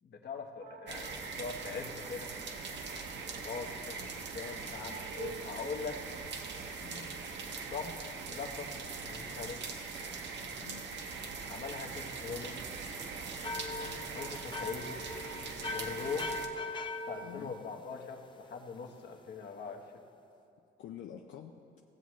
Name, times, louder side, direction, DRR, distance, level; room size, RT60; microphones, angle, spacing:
voice 1, 0.0-2.3 3.4-6.0 7.7-8.0 8.3-8.7 9.0-9.6 11.4-12.6 14.1-15.0 15.6-16.2 17.1-19.8, left 5 dB, 55° left, 3 dB, 1.1 m, -41 dB
sound 1, 0.6-9.4, right 7 dB, 45° right, 0.4 m, -53 dB
sound 2, 0.9-16.5, right 4 dB, 65° right, 1.0 m, -41 dB
voice 2, 6.8-7.1 10.6-10.8 17.2-17.6 20.6-21.8, left 9 dB, 80° left, 3 dB, 0.5 m, -48 dB
sound 3, 13.4-18.3, left 2 dB, 25° left, 0.6 m, -41 dB
16.0 x 7.3 x 3.1 m, 2.8 s
cardioid pair, 90°, 20 cm